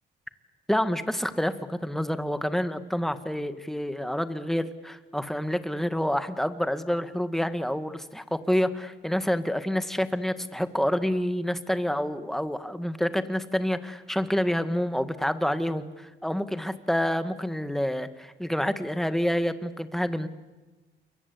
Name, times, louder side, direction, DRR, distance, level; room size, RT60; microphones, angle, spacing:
voice 1, 0.7-20.3, equal, ahead, 10 dB, 1.8 m, -28 dB
28.5 x 23.0 x 8.5 m, 1.2 s
cardioid pair, 90°, 20 cm